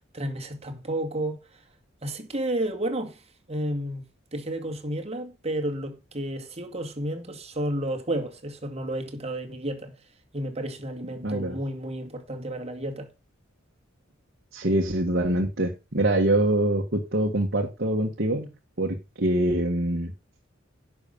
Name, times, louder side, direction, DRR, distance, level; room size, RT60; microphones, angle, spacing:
voice 1, 0.1-1.4 2.0-3.2 3.5-4.0 4.3-10.0 10.3-13.1, right 1 dB, 30° right, 2.2 m, -31 dB
voice 2, 11.2-11.6 14.5-18.5 18.8-20.1, right 1 dB, 55° right, 1.7 m, -24 dB
11.0 x 6.2 x 5.4 m
head